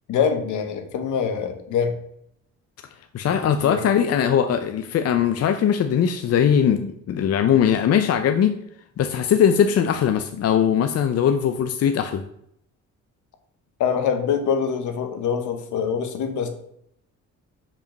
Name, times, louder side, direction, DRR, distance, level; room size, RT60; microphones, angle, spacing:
voice 1, 0.1-2.0 3.4-3.8 13.8-16.5, left 7 dB, 75° left, 7 dB, 1.2 m, -24 dB
voice 2, 3.1-8.6 9.0-12.2, left 8 dB, 55° left, 8 dB, 0.6 m, -20 dB
5.5 x 5.1 x 5.2 m, 0.73 s
cardioid pair, 90°, 30 cm